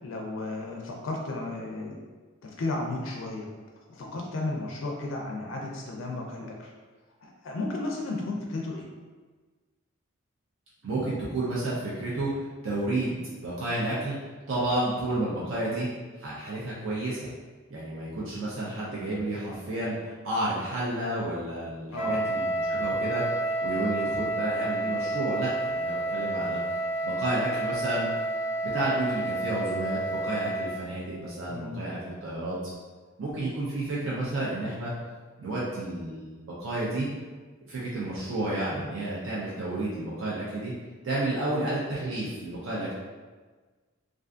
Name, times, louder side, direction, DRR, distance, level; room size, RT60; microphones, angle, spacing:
voice 1, 0.0-2.0 2.4-3.5 3.9-6.7 7.2-8.9 21.9-22.3 31.5-31.8, left 2 dB, 65° left, -1 dB, 0.4 m, -34 dB
voice 2, 10.8-14.2 14.5-15.9 16.2-17.3 17.7-23.2 23.6-26.6 27.0-28.1 28.6-32.6 33.2-34.9 35.4-37.1 37.7-40.7 41.0-42.9, right 2 dB, 65° right, -7 dB, 0.5 m, -31 dB
Wind instrument woodwind instrument, 21.9-30.8, right 2 dB, 5° right, 0.4 m, -30 dB
2.4 x 2.3 x 2.4 m, 1.4 s
head